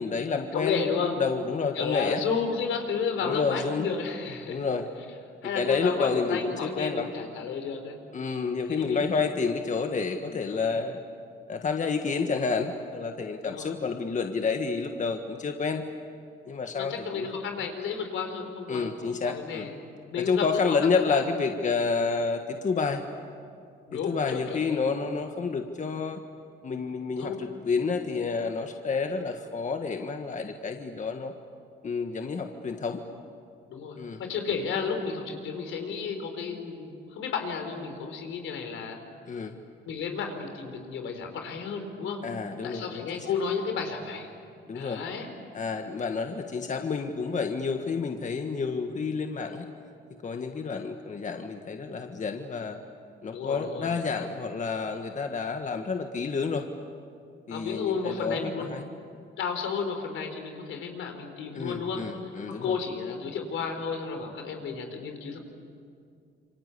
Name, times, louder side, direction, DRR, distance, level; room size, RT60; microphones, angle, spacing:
voice 1, 0.0-0.9 1.2-2.2 3.2-3.9 4.5-4.9 5.5-7.1 8.1-11.0 11.5-15.8 16.4-17.3 18.7-19.7 20.2-23.0 23.9-26.2 26.6-31.3 31.8-33.0 34.0-34.2 39.3-39.6 42.2-43.3 44.7-45.0 45.5-49.7 50.2-52.8 53.2-56.7 57.5-58.8 61.5-62.8, left 5 dB, 40° left, 5 dB, 1.6 m, -29 dB
voice 2, 0.5-1.1 1.7-4.7 5.4-8.0 8.7-9.1 10.5-10.7 13.4-13.7 16.7-21.2 23.9-24.8 27.2-27.3 33.7-39.0 39.9-42.2 42.6-44.3 44.7-45.3 53.3-54.3 57.5-58.7 59.4-65.4, left 5 dB, 80° left, 5 dB, 4.3 m, -32 dB
27.5 x 24.5 x 8.5 m, 2.3 s
cardioid pair, 90°, 20 cm